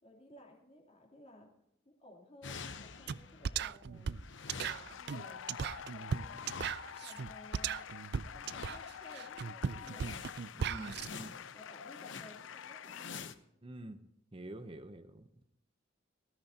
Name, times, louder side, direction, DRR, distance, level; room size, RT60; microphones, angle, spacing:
voice 1, 0.0-1.5 1.8-4.1 4.4-6.4 6.8-7.9 8.3-10.2 11.0-11.3 11.5-13.2, left 1 dB, 35° left, -1 dB, 3.1 m, -57 dB
sound 1, 2.4-3.7 4.0-7.2 8.2-9.1 9.4-9.5 9.8-13.4, left 5 dB, 70° left, 0.9 m, -49 dB
sound 2, 3.1-3.2 3.4-11.1, right 7 dB, 60° right, 0.4 m, -37 dB
sound 3, 4.2-13.1, left 8 dB, 90° left, 0.5 m, -48 dB
voice 2, 10.5-11.3 13.6-14.0 14.3-15.4, right 1 dB, 30° right, 9 dB, 0.8 m, -47 dB
19.5 x 14.0 x 2.8 m, 0.79 s
head